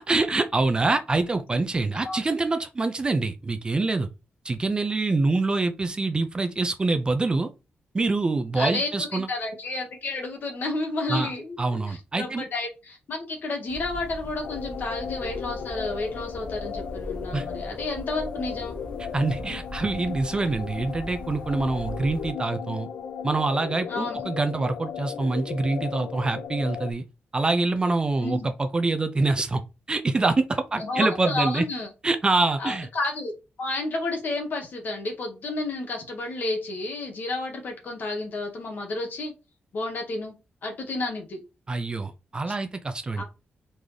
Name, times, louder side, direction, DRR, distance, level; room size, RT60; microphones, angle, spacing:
voice 1, 0.0-4.1 4.4-7.5 7.9-9.3 11.1-11.3 11.6-12.4 17.3-17.5 19.1-22.9 23.2-27.0 27.3-29.6 29.9-31.6 32.0-32.9 41.7-43.2, right 3 dB, 20° right, 0.4 m, -25 dB
voice 2, 8.5-18.8 23.9-24.2 28.2-28.5 30.8-31.9 32.6-33.3 33.6-39.3 39.7-40.3 40.6-41.4 43.2-43.3, left 2 dB, 50° left, 1.3 m, -31 dB
sound 1, 13.7-22.3, equal, 25° left, 1.0 m, -40 dB
sound 2, 14.4-26.9, left 7 dB, 90° left, 0.4 m, -36 dB
4.0 x 3.5 x 3.2 m
wide cardioid pair, 165°, 4 cm